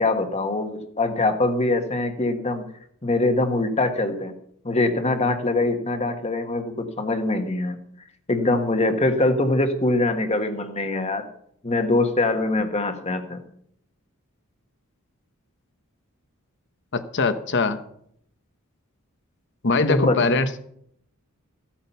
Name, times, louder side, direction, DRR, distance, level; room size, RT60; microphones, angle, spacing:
voice 1, 0.0-2.6 3.0-4.3 4.6-7.8 8.3-11.2 11.6-13.4 19.9-20.2, left 2 dB, 30° left, 6 dB, 1.5 m, -23 dB
voice 2, 16.9-17.8 19.6-20.6, left 3 dB, 55° left, 10 dB, 1.2 m, -22 dB
15.0 x 8.7 x 5.6 m, 0.68 s
head